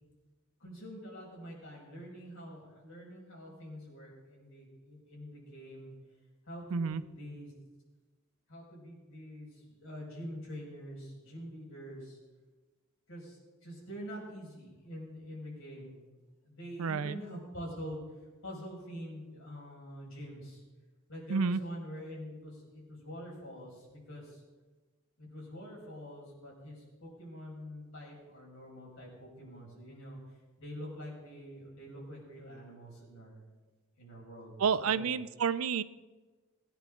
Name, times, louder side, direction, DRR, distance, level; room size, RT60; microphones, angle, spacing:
voice 1, 0.6-5.9 6.5-7.5 8.5-12.2 13.1-16.1 16.4-18.0 18.4-20.6 21.1-24.4 25.2-30.2 30.6-33.4 34.0-35.1, equal, 65° left, -3 dB, 5.5 m, -46 dB
voice 2, 6.7-7.0 16.8-17.2 21.3-21.6 34.6-35.8, right 6 dB, 75° right, 15 dB, 0.5 m, -30 dB
20.5 x 10.0 x 3.7 m, 1.3 s
head